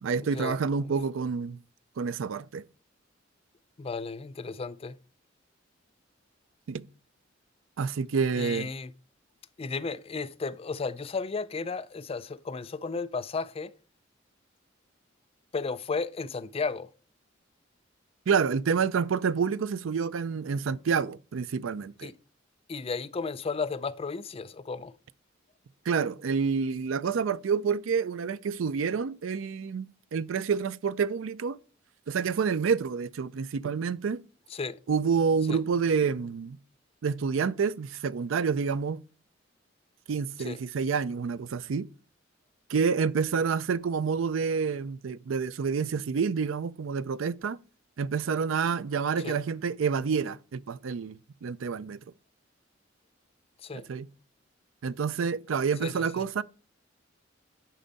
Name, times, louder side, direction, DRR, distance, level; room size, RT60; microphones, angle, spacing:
voice 1, 0.0-1.6 2.0-2.6 6.7-6.9 7.8-8.7 18.3-22.1 25.9-31.6 32.1-34.2 34.9-36.6 37.0-39.0 40.1-41.9 42.7-47.6 48.0-52.0 53.7-54.1 54.8-56.4, right 6 dB, 85° right, 0.4 m, -28 dB
voice 2, 3.8-5.0 8.4-8.9 9.6-13.7 15.5-16.9 22.0-22.1 22.7-24.9 34.5-34.8 35.5-35.6 40.4-40.6 49.2-49.4 53.6-53.9 55.8-56.3, left 4 dB, 30° left, 0.4 m, -34 dB
10.0 x 5.3 x 4.0 m
head